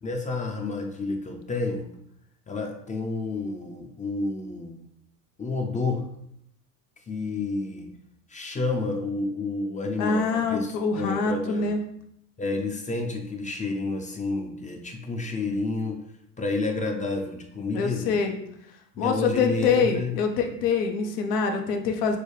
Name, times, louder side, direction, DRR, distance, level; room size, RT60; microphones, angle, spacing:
voice 1, 0.0-1.9 2.5-4.8 5.4-6.0 7.1-7.9 8.3-11.7 12.4-16.0 16.4-18.2 19.0-20.2, left 3 dB, 15° left, 3 dB, 0.5 m, -30 dB
voice 2, 10.0-11.8 17.7-18.4 19.0-22.2, left 5 dB, 80° left, 5 dB, 0.8 m, -25 dB
6.5 x 2.3 x 3.2 m, 0.73 s
hypercardioid pair, 85°, 48 cm